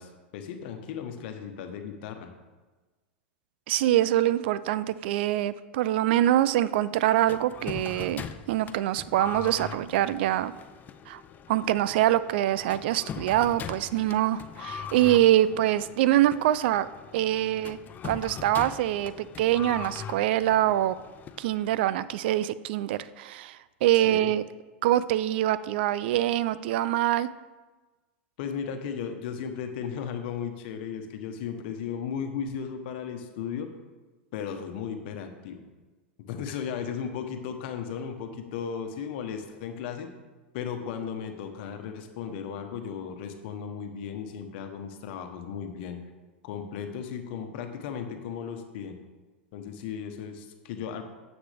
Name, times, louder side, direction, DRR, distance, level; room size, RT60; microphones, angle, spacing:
voice 1, 0.0-2.3 24.0-24.3 28.4-33.7 34.3-35.6 36.2-40.1 40.5-46.0 46.4-49.0 49.5-51.0, left 7 dB, 60° left, 6 dB, 1.2 m, -35 dB
voice 2, 3.7-10.5 11.1-11.2 11.5-16.9 17.1-17.8 18.0-21.0 21.4-24.4 24.8-27.3, right 13 dB, 65° right, 16 dB, 0.4 m, -24 dB
sound 1, 7.3-22.0, left 8 dB, 30° left, 0.5 m, -41 dB
9.7 x 7.2 x 3.5 m, 1.2 s
hypercardioid pair, 105°, 6 cm